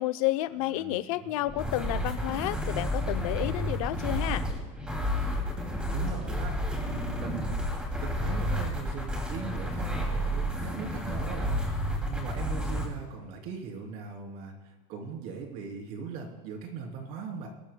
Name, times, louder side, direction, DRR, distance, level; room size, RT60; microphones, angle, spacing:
voice 1, 0.0-4.5, left 16 dB, 80° left, 12 dB, 0.7 m, -30 dB
voice 2, 0.6-1.5 5.9-6.5 6.9-7.6 8.0-14.5 14.9-17.5, right 5 dB, 55° right, 2 dB, 3.3 m, -40 dB
sound 1, 1.5-12.9, equal, 5° right, 2.6 m, -31 dB
22.0 x 13.0 x 2.3 m, 1.2 s
supercardioid pair, 150°, 18 cm